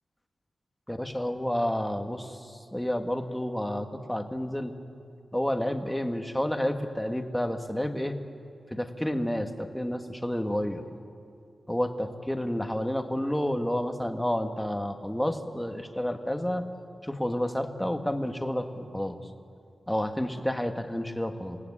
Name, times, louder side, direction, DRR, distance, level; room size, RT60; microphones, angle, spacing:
voice 1, 0.9-2.4 2.7-4.7 5.3-8.2 8.7-10.8 11.7-16.6 17.0-19.1 19.9-21.6, left 1 dB, 5° left, 5 dB, 1.5 m, -30 dB
27.0 x 18.5 x 9.8 m, 2.4 s
wide cardioid pair, 155°, 0 cm